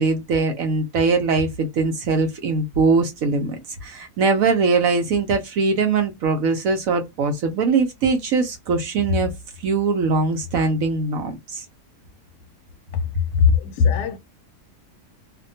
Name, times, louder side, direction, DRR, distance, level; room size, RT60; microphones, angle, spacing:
voice 1, 0.0-9.3 9.6-11.6, right 4 dB, 70° right, 0.9 m, -21 dB
voice 2, 12.9-14.2, left 7 dB, 75° left, 1.0 m, -20 dB
2.8 x 2.2 x 2.6 m
omnidirectional pair, 1.8 m